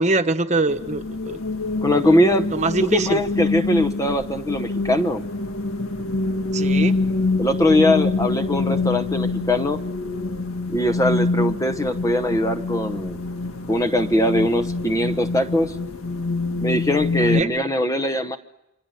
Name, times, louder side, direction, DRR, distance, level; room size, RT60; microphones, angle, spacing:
voice 1, 0.0-1.4 2.5-3.2 6.5-7.0 17.2-17.5, right 2 dB, 30° right, 7 dB, 1.2 m, -23 dB
sound 1, 0.7-17.4, left 3 dB, 75° left, 1.7 m, -26 dB
voice 2, 1.8-2.5 2.8-5.2 7.4-9.8 10.7-13.2 13.7-15.7 16.6-18.4, left 1 dB, 15° left, 7 dB, 1.0 m, -21 dB
28.0 x 25.5 x 7.8 m, 0.90 s
head